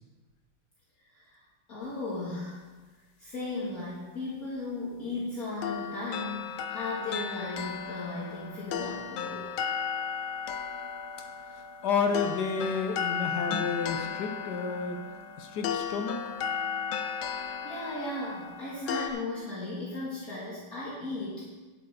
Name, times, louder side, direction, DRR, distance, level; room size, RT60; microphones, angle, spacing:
voice 1, 1.1-1.4 1.7-2.6 3.2-9.5 17.3-17.4 17.6-21.4, left 2 dB, 45° left, -7 dB, 2.2 m, -36 dB
sound 1, 5.6-19.1, left 7 dB, 80° left, 1.5 m, -35 dB
voice 2, 11.8-15.0 15.4-16.3, left 5 dB, 65° left, 5 dB, 1.3 m, -30 dB
9.9 x 8.0 x 4.3 m, 1.3 s
omnidirectional pair, 2.2 m